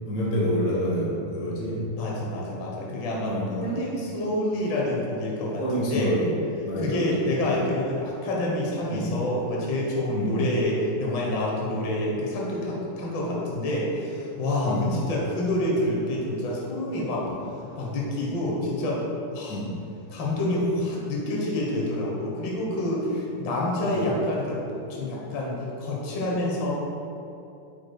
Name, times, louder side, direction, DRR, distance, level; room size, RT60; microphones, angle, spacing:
voice 1, 0.0-1.8 3.2-3.7 5.6-6.4 6.6-7.1 7.4-7.6 8.9-9.1 10.1-10.4 14.7-14.9 17.2-17.4 19.5-19.7 23.9-24.1, equal, 60° left, -4 dB, 2.2 m, -28 dB
voice 2, 1.9-6.1 6.8-17.3 17.8-19.0 19.3-19.6 20.1-24.6 24.9-26.7, left 1 dB, 85° left, -3 dB, 1.0 m, -27 dB
10.5 x 4.9 x 2.3 m, 2.8 s
omnidirectional pair, 3.9 m